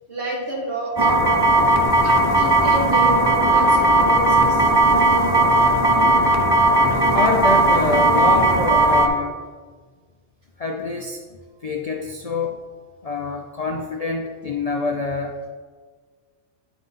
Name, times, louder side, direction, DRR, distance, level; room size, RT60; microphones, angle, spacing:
voice 1, 0.1-1.2 2.0-3.1 3.5-4.7, right 1 dB, 65° right, -5 dB, 2.1 m, -30 dB
sound 1, 1.0-9.1, right 2 dB, 40° right, 0.3 m, -17 dB
voice 2, 7.1-9.4 10.6-11.2 11.6-12.6 13.0-15.4, left 3 dB, 50° left, 1 dB, 0.4 m, -25 dB
9.6 x 3.8 x 4.0 m, 1.5 s
omnidirectional pair, 1.2 m